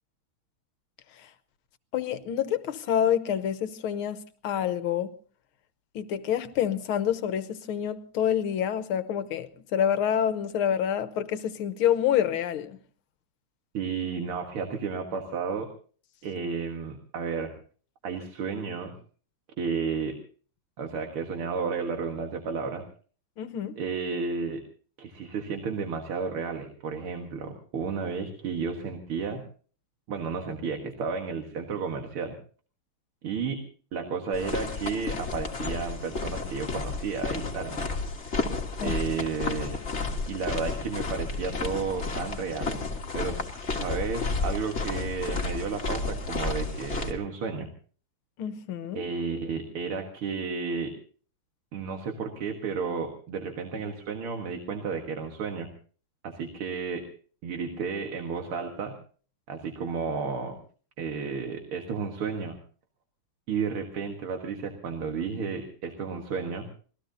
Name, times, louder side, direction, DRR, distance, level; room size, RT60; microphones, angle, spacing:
voice 1, 1.9-4.2 4.4-5.1 6.0-12.8 23.4-23.8 38.8-39.0 48.4-49.0, left 9 dB, 80° left, 1.8 m, -27 dB
voice 2, 13.7-15.7 16.2-17.5 18.0-19.0 19.6-20.2 20.8-22.8 23.8-24.6 25.0-29.4 30.1-32.3 33.2-33.6 33.9-37.9 38.8-39.8 40.3-42.8 43.1-47.7 48.9-50.9 51.7-55.7 56.2-57.1 57.4-58.9 59.5-60.5 61.0-62.6 63.5-66.7, right 5 dB, 85° right, 2.5 m, -32 dB
sound 1, 34.3-47.1, left 3 dB, 35° left, 1.9 m, -32 dB
26.0 x 19.5 x 2.8 m
omnidirectional pair, 2.3 m